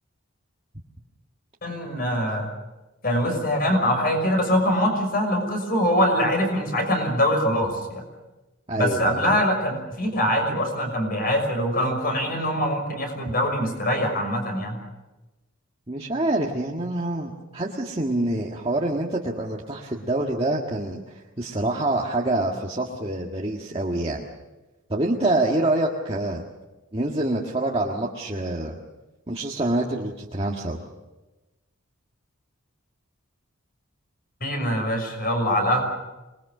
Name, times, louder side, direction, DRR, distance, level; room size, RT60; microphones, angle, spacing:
voice 1, 1.6-2.5 3.0-8.0 8.8-14.8 34.4-35.8, equal, 45° left, 5 dB, 6.1 m, -23 dB
voice 2, 8.7-9.3 15.9-21.0 21.4-24.3 24.9-26.4 26.9-28.7 29.3-30.8, right 2 dB, 25° right, -2 dB, 1.7 m, -26 dB
27.0 x 21.0 x 6.6 m, 1.1 s
head